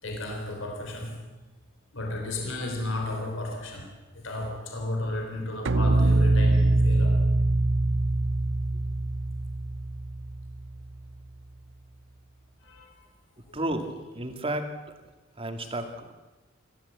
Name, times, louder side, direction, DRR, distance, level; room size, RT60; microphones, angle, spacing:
voice 1, 0.0-1.2 1.9-7.2 12.6-13.1, left 1 dB, 70° left, 1 dB, 3.8 m, -34 dB
sound 1, 5.7-10.9, right 2 dB, 65° right, 0.8 m, -23 dB
voice 2, 13.5-13.9 14.1-14.7 15.0-15.1 15.4-16.1, right 1 dB, 30° right, 5 dB, 2.2 m, -31 dB
28.0 x 13.0 x 8.2 m, 1.2 s
head